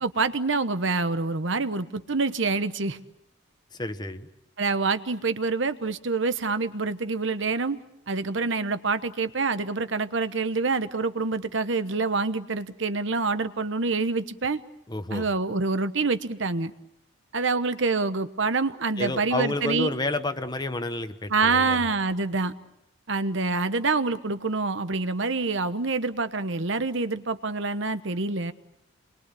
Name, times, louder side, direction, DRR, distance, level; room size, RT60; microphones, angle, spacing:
voice 1, 0.0-3.0 4.6-7.8 8.1-14.6 15.1-16.7 17.3-19.9 21.3-22.5 23.1-28.5, right 3 dB, 65° right, 11 dB, 1.1 m, -26 dB
voice 2, 3.7-4.3 14.9-15.3 19.0-21.8, left 2 dB, 20° left, 9 dB, 1.3 m, -30 dB
28.5 x 22.5 x 8.4 m, 0.83 s
head